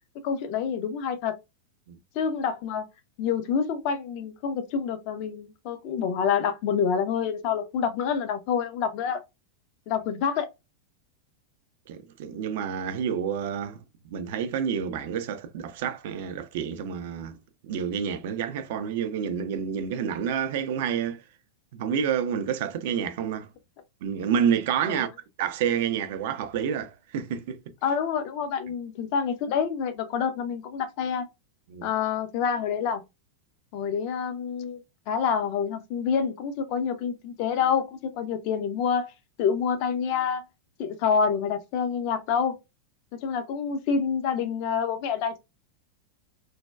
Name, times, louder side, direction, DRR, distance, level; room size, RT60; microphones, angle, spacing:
voice 1, 0.2-1.4 2.1-2.8 3.2-9.2 9.9-10.5 24.9-25.0 27.8-31.3 31.8-33.0 33.7-34.8 35.1-39.1 39.4-40.4 40.8-42.6 43.1-45.4, left 7 dB, 45° left, 0.5 m, -27 dB
voice 2, 11.9-13.8 14.1-17.4 17.6-21.2 21.7-23.5 24.0-25.1 25.4-27.6 31.7-31.9, right 8 dB, 50° right, 0.4 m, -29 dB
3.2 x 2.1 x 2.2 m
figure-of-eight pair, 90°, 0 cm